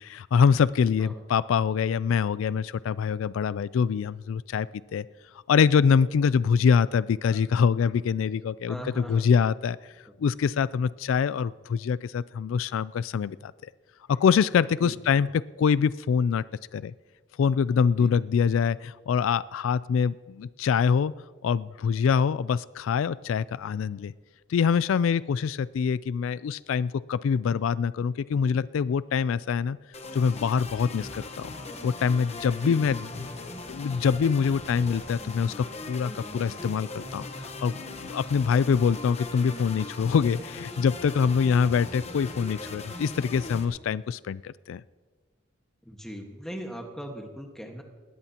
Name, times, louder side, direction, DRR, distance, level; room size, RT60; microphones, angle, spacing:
voice 1, 0.0-4.7 4.9-5.0 5.5-9.8 10.2-13.5 14.1-15.3 15.6-16.4 16.7-16.9 17.4-21.1 21.4-24.1 24.5-29.8 30.1-31.5 31.8-33.0 33.7-44.8, left 6 dB, 85° left, 18 dB, 0.3 m, -24 dB
voice 2, 8.7-9.3 14.8-14.9 18.0-18.1 32.6-33.1 45.8-47.8, equal, ahead, 2 dB, 1.5 m, -39 dB
sound 1, 29.9-43.6, left 2 dB, 35° left, 1.1 m, -39 dB
20.0 x 17.5 x 2.9 m, 1.4 s
head